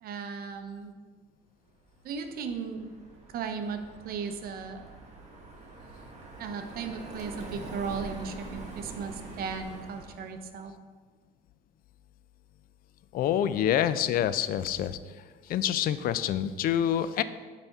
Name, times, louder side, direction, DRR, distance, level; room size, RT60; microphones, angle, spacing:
voice 1, 0.0-0.9 2.0-2.9 3.3-4.8 6.4-10.7, right 5 dB, 60° right, 7 dB, 0.7 m, -36 dB
Car passing by, 1.9-10.4, right 3 dB, 40° right, 1.5 m, -45 dB
voice 2, 13.1-15.0 15.5-17.2, left 10 dB, 60° left, 14 dB, 0.4 m, -26 dB
8.9 x 4.2 x 3.5 m, 1.5 s
cardioid pair, 110°, 17 cm